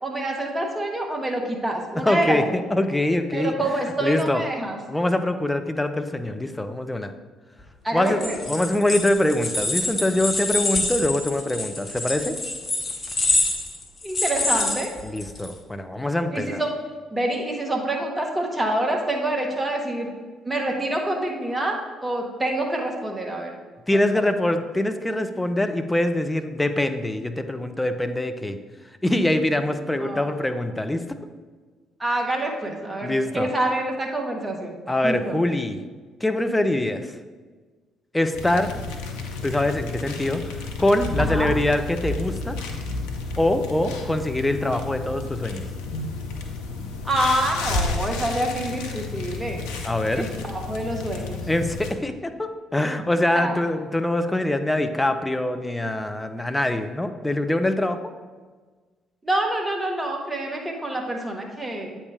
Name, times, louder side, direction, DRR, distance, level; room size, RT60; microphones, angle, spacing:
voice 1, 0.0-2.4 3.3-4.8 7.8-8.4 14.0-14.9 16.3-16.7 17.1-20.2 20.4-23.5 23.9-24.1 30.0-30.3 32.0-34.7 35.0-35.4 41.2-41.5 47.0-49.7 50.1-51.4 53.3-53.6 59.2-62.0, right 1 dB, 20° right, 1 dB, 1.4 m, -26 dB
voice 2, 2.0-3.5 4.0-4.4 4.9-7.1 7.9-8.2 8.5-12.3 15.0-16.6 23.9-28.6 29.0-31.0 33.0-33.5 34.9-35.8 36.2-37.1 38.1-38.7 39.4-40.4 40.8-42.6 43.4-45.6 49.8-50.3 51.5-58.0, left 1 dB, 10° left, 8 dB, 0.6 m, -24 dB
sound 1, 8.1-15.5, left 2 dB, 35° left, 1.1 m, -26 dB
sound 2, 38.3-51.9, left 3 dB, 75° left, 0.6 m, -31 dB
8.3 x 3.5 x 4.8 m, 1.4 s
figure-of-eight pair, 45°, 0 cm